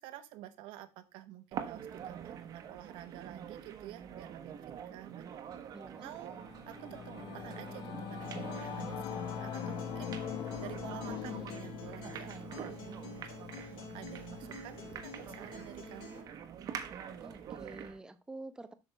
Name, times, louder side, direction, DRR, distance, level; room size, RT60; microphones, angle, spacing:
voice 1, 0.0-5.3 6.0-6.3 6.7-10.1 10.6-16.3, right 13 dB, 70° right, 1.0 m, -49 dB
sound 1, 1.5-18.0, right 8 dB, 45° right, 1.1 m, -46 dB
voice 2, 5.7-6.1 17.2-18.7, right 2 dB, 10° right, 0.6 m, -48 dB
Singing / Musical instrument, 6.1-15.8, left 8 dB, 60° left, 0.9 m, -43 dB
Acoustic guitar, 8.2-16.2, left 4 dB, 75° left, 2.7 m, -49 dB
7.9 x 6.1 x 3.3 m
cardioid pair, 145°, 9 cm